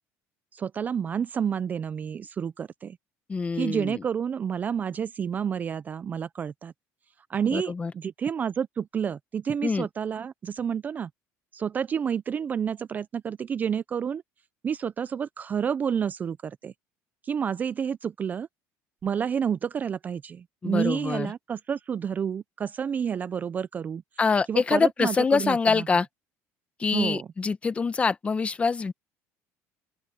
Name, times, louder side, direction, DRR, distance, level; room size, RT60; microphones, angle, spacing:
voice 1, 0.5-3.0 3.5-6.7 7.3-11.1 11.5-14.2 14.6-16.7 17.2-18.5 19.0-24.0 24.5-25.9 26.9-27.3, right 7 dB, 25° right, 0.4 m, -29 dB
voice 2, 3.3-4.0 7.5-7.9 9.6-9.9 20.6-21.3 24.2-26.1 26.8-28.9, left 4 dB, 20° left, 0.9 m, -25 dB
open air
cardioid pair, 140°, 6 cm